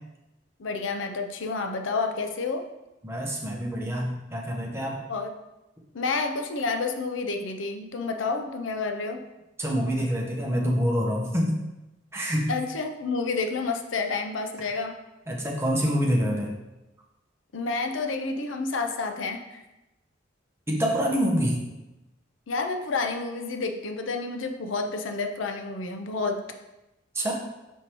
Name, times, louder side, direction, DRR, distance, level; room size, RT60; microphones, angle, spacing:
voice 1, 0.6-2.6 5.1-5.3 5.9-9.2 12.5-15.0 17.5-19.6 22.5-26.4, left 4 dB, 85° left, 6 dB, 0.6 m, -29 dB
voice 2, 3.0-5.0 9.6-11.6 12.1-12.5 15.3-16.5 20.7-21.6 27.1-27.3, equal, 15° right, -2 dB, 1.0 m, -26 dB
6.3 x 5.2 x 3.0 m, 0.98 s
head